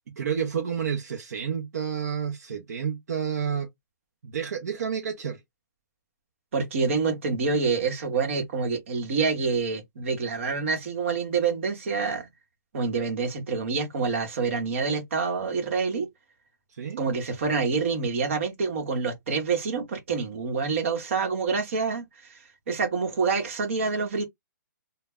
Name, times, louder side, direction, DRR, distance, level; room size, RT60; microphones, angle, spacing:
voice 1, 0.1-3.7 4.2-5.4 16.7-17.0, right 7 dB, 55° right, 0.6 m, -30 dB
voice 2, 6.5-12.3 12.7-16.1 17.0-22.4 22.7-24.2, right 5 dB, 40° right, 1.0 m, -27 dB
2.1 x 2.1 x 3.4 m
hypercardioid pair, 170°, 10 cm